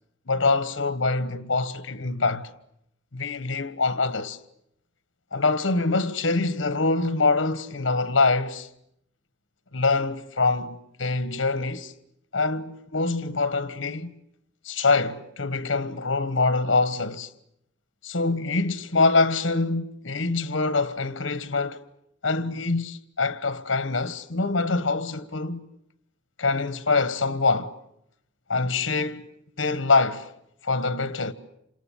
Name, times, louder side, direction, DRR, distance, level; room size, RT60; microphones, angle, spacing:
voice 1, 0.3-2.5 3.1-4.4 5.3-8.7 9.7-11.9 12.3-14.2 14.6-17.3 18.0-21.8 22.2-25.6 26.4-27.8 28.5-29.3 29.6-30.3 30.6-31.3, left 3 dB, 70° left, 1.4 m, -24 dB
29.0 x 27.0 x 7.3 m
head